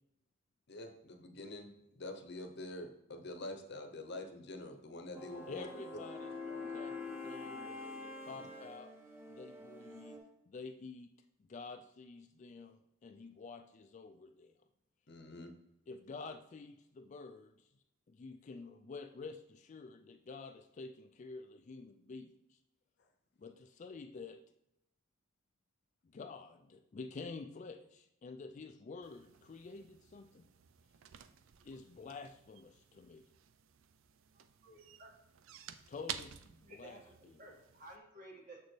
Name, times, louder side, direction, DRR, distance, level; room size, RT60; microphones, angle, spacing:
voice 1, 0.7-5.7 15.1-15.5, left 2 dB, 55° left, 6 dB, 0.8 m, -46 dB
sound 1, 5.1-10.2, left 3 dB, 10° right, 1.0 m, -46 dB
voice 2, 5.5-8.9 9.3-10.2 10.5-11.1 11.5-14.5 15.9-17.7 18.1-22.6 23.4-24.4 26.1-30.4 31.6-33.2 35.9-36.3 36.6-37.0, left 4 dB, 35° left, 6 dB, 0.3 m, -49 dB
sound 2, 29.0-38.0, right 9 dB, 65° right, 0.4 m, -52 dB
voice 3, 34.6-35.1 36.6-38.6, right 1 dB, 40° right, -1 dB, 1.6 m, -54 dB
6.9 x 6.5 x 3.2 m, 0.82 s
head